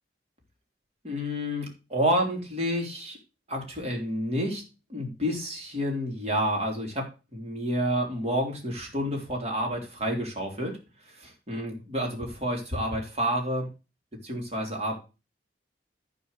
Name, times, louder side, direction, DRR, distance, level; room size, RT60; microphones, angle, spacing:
voice 1, 1.0-3.2 3.5-4.6 4.9-7.1 7.3-10.8 11.0-13.7 14.2-14.9, equal, 35° right, 1 dB, 3.1 m, -29 dB
11.5 x 4.4 x 6.6 m, 0.30 s
head